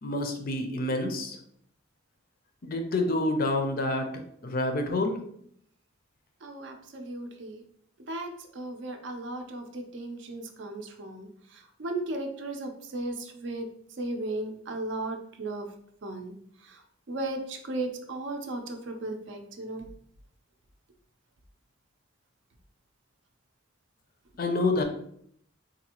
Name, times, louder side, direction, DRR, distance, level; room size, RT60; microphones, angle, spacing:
voice 1, 0.0-1.4 2.6-4.1 4.4-5.2 24.4-24.8, left 2 dB, 45° left, 5 dB, 0.4 m, -27 dB
voice 2, 6.4-7.6 8.1-13.7 14.0-15.7 16.0-16.4 16.6-16.8 17.1-19.9, right 2 dB, 60° right, 4 dB, 0.5 m, -36 dB
3.9 x 2.5 x 2.9 m, 0.67 s
head